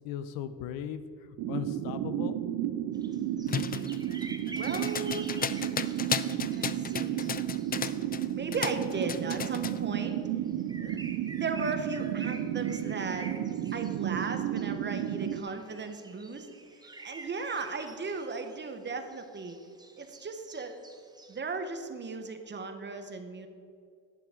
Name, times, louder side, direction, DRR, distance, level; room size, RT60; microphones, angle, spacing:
voice 1, 0.0-2.4, left 9 dB, 85° left, 12 dB, 0.7 m, -38 dB
sound 1, 1.4-15.4, right 11 dB, 75° right, 0.7 m, -33 dB
sound 2, 2.9-21.4, right 2 dB, 10° right, 0.9 m, -49 dB
sound 3, 3.5-8.3 8.5-9.8, left 7 dB, 25° left, 0.4 m, -34 dB
voice 2, 4.5-5.2 6.5-7.3 8.3-10.2 10.8-11.0 11.3-13.3 13.7-16.5 16.7-19.6 20.0-20.8 21.3-23.5, right 4 dB, 30° right, 7 dB, 1.2 m, -36 dB
11.0 x 9.0 x 3.8 m, 2.3 s
supercardioid pair, 85°, 34 cm